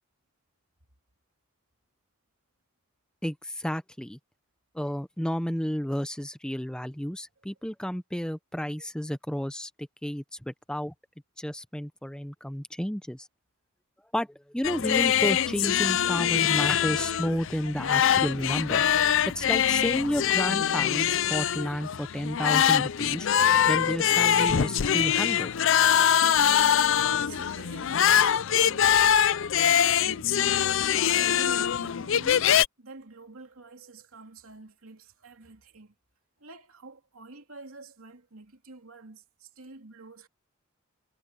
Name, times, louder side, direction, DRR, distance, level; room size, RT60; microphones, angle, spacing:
voice 1, 3.2-4.2 4.7-9.7 10.0-10.9 11.4-13.3 14.1-14.3 14.5-18.8 19.3-23.3 23.7-25.5, equal, 5° left, 0.6 m, -31 dB
sound 1, 14.6-32.7, left 9 dB, 60° left, 0.5 m, -23 dB
voice 2, 26.8-29.2 29.7-32.5 32.8-35.9 36.4-40.3, right 3 dB, 75° right, 2.9 m, -48 dB
head